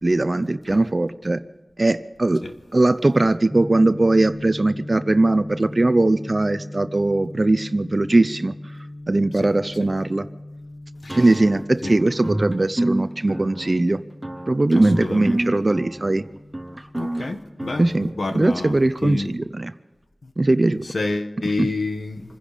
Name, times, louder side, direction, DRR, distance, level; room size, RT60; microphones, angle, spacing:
voice 1, 0.0-1.4 1.8-2.4 2.7-8.5 9.1-10.3 11.2-14.0 14.5-16.2 17.8-19.7 20.4-20.8 21.6-21.7, right 2 dB, 40° right, 0.6 m, -20 dB
sound 1, 3.5-19.1, left 1 dB, 10° left, 1.8 m, -39 dB
sound 2, 11.1-18.5, right 1 dB, 15° right, 1.1 m, -29 dB
voice 2, 14.9-15.3 16.9-17.9 18.2-19.3 20.9-22.2, left 3 dB, 70° left, 1.5 m, -28 dB
26.5 x 10.5 x 5.1 m
wide cardioid pair, 65°, 0 cm